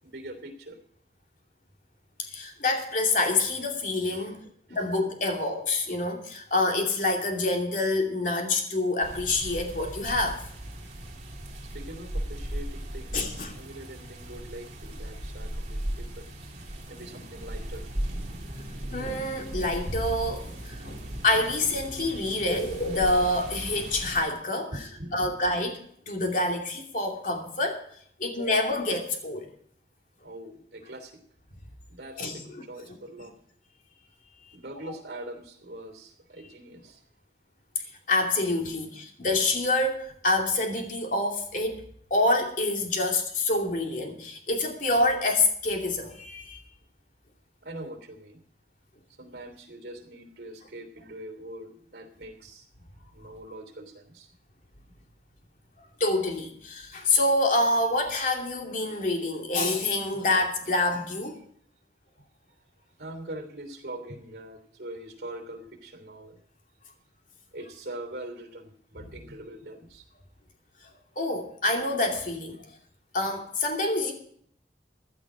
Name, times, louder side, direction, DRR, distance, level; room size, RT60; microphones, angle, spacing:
voice 1, 0.0-0.8 4.1-4.4 4.7-4.8 11.7-16.3 16.9-17.9 24.7-25.3 30.2-31.2 31.9-33.3 34.5-37.0 38.6-38.7 47.6-48.4 49.2-52.6 53.1-54.3 63.0-66.4 67.5-70.0, right 1 dB, 65° right, 6 dB, 3.1 m, -42 dB
voice 2, 2.2-4.4 4.7-10.4 13.1-13.5 18.9-21.0 21.2-24.7 25.1-27.8 28.2-29.5 32.2-32.6 34.4-34.6 38.1-41.8 42.1-46.6 56.0-61.4 71.2-72.6 73.1-74.1, left 2 dB, 45° left, 2 dB, 2.7 m, -27 dB
sound 1, 9.0-24.2, right 1 dB, 40° right, 2.9 m, -37 dB
16.0 x 11.5 x 5.0 m, 0.62 s
head